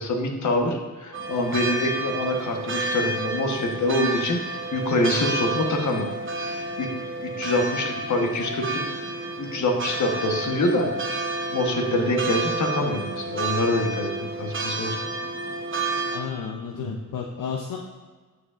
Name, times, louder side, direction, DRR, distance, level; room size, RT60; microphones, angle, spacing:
voice 1, 0.0-6.1 6.4-6.9 7.2-8.8 9.4-11.2 11.5-14.1 14.4-15.0 16.7-17.0, left 1 dB, 60° left, 2 dB, 1.1 m, -25 dB
sound 1, 1.1-16.2, right 2 dB, 40° right, 0.8 m, -30 dB
voice 2, 16.1-17.8, left 6 dB, 75° left, 1 dB, 0.6 m, -32 dB
13.5 x 4.9 x 2.5 m, 1.4 s
wide cardioid pair, 135°, 33 cm